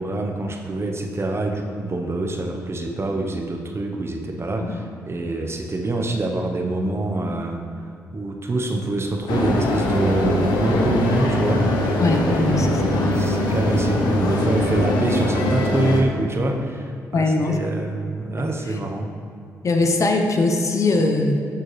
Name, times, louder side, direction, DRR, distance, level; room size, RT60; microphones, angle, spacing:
voice 1, 0.0-7.6 8.1-11.8 12.3-16.8 17.1-19.1, right 2 dB, 40° right, 2 dB, 0.9 m, -25 dB
sound 1, 9.3-16.0, left 1 dB, 85° left, 0.8 m, -21 dB
voice 2, 12.0-13.3 17.1-17.6 18.7-18.8 19.6-21.5, left 2 dB, 50° left, 4 dB, 0.9 m, -21 dB
12.5 x 4.4 x 3.3 m, 2.3 s
supercardioid pair, 55°, 7 cm